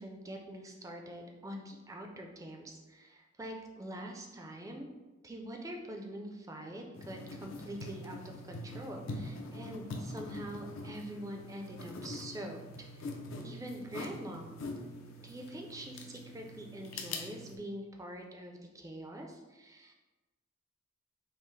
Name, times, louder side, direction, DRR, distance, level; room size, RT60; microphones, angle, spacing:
voice 1, 0.0-4.9 5.2-12.6 12.9-13.2 13.4-14.6 15.2-19.9, equal, 15° right, 2 dB, 0.3 m, -44 dB
sound 1, 7.0-17.6, left 2 dB, 70° left, 0.5 m, -44 dB
5.4 x 2.0 x 3.1 m, 1.2 s
head